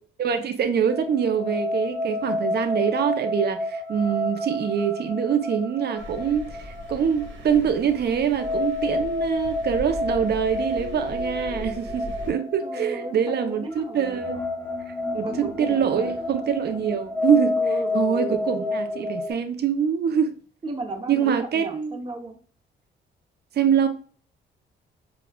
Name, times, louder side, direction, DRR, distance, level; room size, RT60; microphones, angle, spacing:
voice 1, 0.2-14.4 15.1-17.6 17.9-20.3 21.1-22.0 23.6-23.9, right 8 dB, 55° right, 0.7 m, -24 dB
sound 1, 0.9-19.3, left 2 dB, 5° left, 1.0 m, -29 dB
Thunder, 6.0-12.3, left 1 dB, 70° right, 1.5 m, -39 dB
voice 2, 12.6-14.2 15.2-16.2 17.6-18.7 20.6-22.4, right 3 dB, 25° right, 0.9 m, -35 dB
7.1 x 2.4 x 2.3 m
cardioid pair, 90°, 20 cm